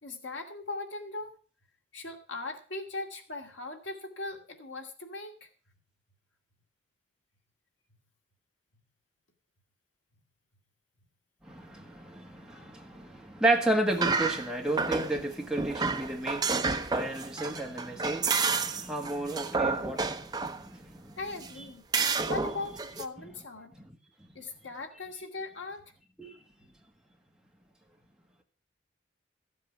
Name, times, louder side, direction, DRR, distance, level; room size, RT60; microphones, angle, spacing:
voice 1, 0.0-1.3 1.9-5.5 21.2-21.8 22.2-23.7 24.3-25.9, left 3 dB, 75° left, 2.3 m, -39 dB
voice 2, 11.4-21.2 23.2-23.3 23.8-23.9 26.2-26.4, right 2 dB, 5° right, 1.7 m, -32 dB
sound 1, 13.9-15.2 15.6-20.6 21.4-21.5 21.9-23.0, right 4 dB, 20° right, 0.7 m, -30 dB
14.5 x 7.8 x 5.9 m
head